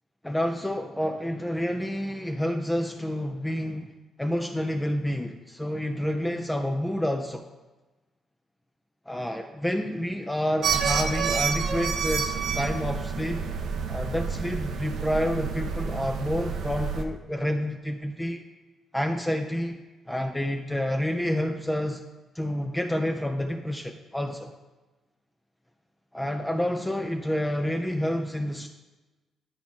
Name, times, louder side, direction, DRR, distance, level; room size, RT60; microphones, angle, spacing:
voice 1, 0.2-7.5 9.1-13.4 13.9-18.4 18.9-19.8 20.1-22.0 22.3-24.5 26.1-28.7, equal, 10° left, 4 dB, 0.5 m, -29 dB
sound 1, 10.6-17.0, right 6 dB, 70° right, 0.7 m, -29 dB
10.5 x 4.6 x 4.1 m, 1.2 s
cardioid pair, 90°, 0 cm